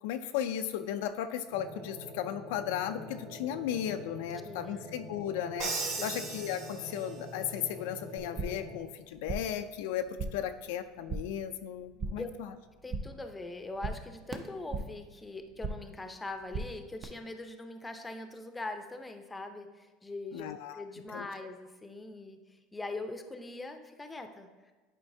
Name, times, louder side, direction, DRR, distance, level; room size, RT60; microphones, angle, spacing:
voice 1, 0.0-5.7 6.0-12.5 20.3-20.8 21.1-21.3, left 10 dB, 80° left, 8 dB, 0.3 m, -35 dB
sound 1, 1.5-8.8, left 1 dB, 55° right, 1.9 m, -46 dB
voice 2, 4.4-4.9 6.0-6.3 12.2-12.5 12.8-24.7, left 2 dB, 10° left, 6 dB, 0.6 m, -42 dB
Crash cymbal, 5.6-7.3, right 4 dB, 75° right, 1.3 m, -37 dB
sound 2, 8.2-8.7 9.0-9.6 9.9-10.5 10.8-11.4 11.7-12.4 12.6-13.3 13.5-15.0 15.3-16.0 16.2-17.0, right 3 dB, 40° right, 0.7 m, -39 dB
10.0 x 4.5 x 2.7 m, 1.3 s
supercardioid pair, 120°, 0 cm